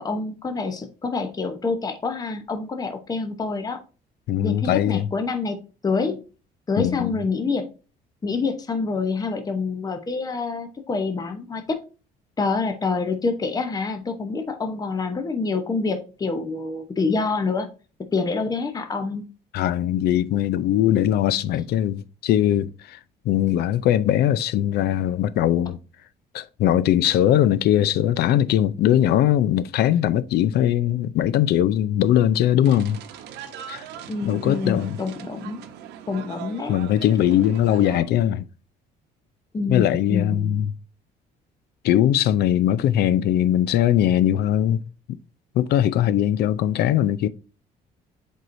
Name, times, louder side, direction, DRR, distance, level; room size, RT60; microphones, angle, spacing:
voice 1, 0.0-3.8 4.4-5.6 5.8-6.2 6.7-7.7 8.2-11.8 12.4-17.7 18.1-19.2 34.1-35.6 36.1-36.7 39.5-40.5, left 4 dB, 20° left, 0.8 m, -26 dB
voice 2, 4.3-5.1 6.8-7.3 19.5-23.0 23.3-25.8 26.3-33.0 33.7-33.8 34.2-35.0 36.7-38.5 39.7-40.7 41.8-44.8 45.1-45.2 45.5-47.3, left 11 dB, 70° left, 0.5 m, -20 dB
sound 1, 32.6-38.0, right 9 dB, 85° right, 0.8 m, -40 dB
7.7 x 4.6 x 2.6 m
cardioid pair, 110°, 17 cm